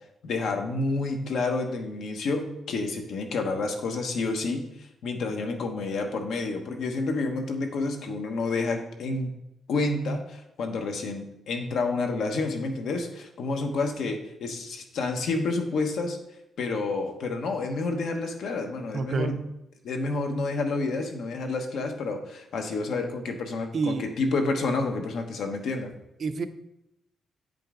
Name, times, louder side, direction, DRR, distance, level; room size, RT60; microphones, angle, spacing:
voice 1, 0.2-9.3 9.7-16.2 16.6-19.4 19.8-25.9, left 3 dB, 70° left, 4 dB, 1.0 m, -29 dB
voice 2, 18.9-19.4 23.7-24.1 26.2-26.5, right 4 dB, 40° right, 9 dB, 0.5 m, -28 dB
9.1 x 5.3 x 3.8 m, 0.84 s
wide cardioid pair, 180°, 0 cm